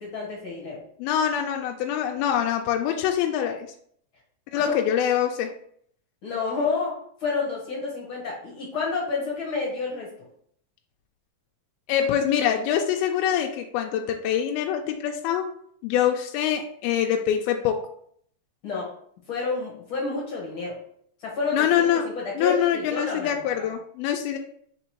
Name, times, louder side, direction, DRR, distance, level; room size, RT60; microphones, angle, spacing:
voice 1, 0.0-0.8 4.6-4.7 6.2-10.1 12.0-12.1 18.6-18.9 19.3-20.7 21.2-21.7 22.0-23.3 23.6-23.7, left 4 dB, 55° left, -3 dB, 1.5 m, -29 dB
voice 2, 1.0-3.7 4.5-5.5 11.9-15.5 15.8-17.8 21.5-22.1 22.4-24.4, left 9 dB, 90° left, 3 dB, 2.4 m, -24 dB
5.0 x 4.3 x 4.6 m, 0.65 s
omnidirectional pair, 4.2 m